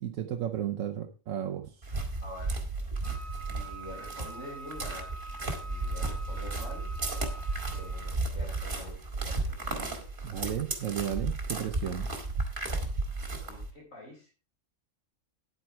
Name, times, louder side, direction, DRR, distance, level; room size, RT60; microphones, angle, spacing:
voice 1, 0.0-1.8 10.2-12.1, right 10 dB, 80° right, 4 dB, 1.2 m, -33 dB
sound 1, 1.8-13.7, right 2 dB, 40° right, 2.0 m, -34 dB
voice 2, 2.2-2.6 3.1-5.2 5.6-6.9 7.7-9.6 13.4-14.3, left 1 dB, 65° left, -6 dB, 4.5 m, -46 dB
Wind instrument woodwind instrument, 3.0-8.2, right 3 dB, 25° left, 2.1 m, -45 dB
9.7 x 8.8 x 4.7 m, 0.34 s
omnidirectional pair, 1.4 m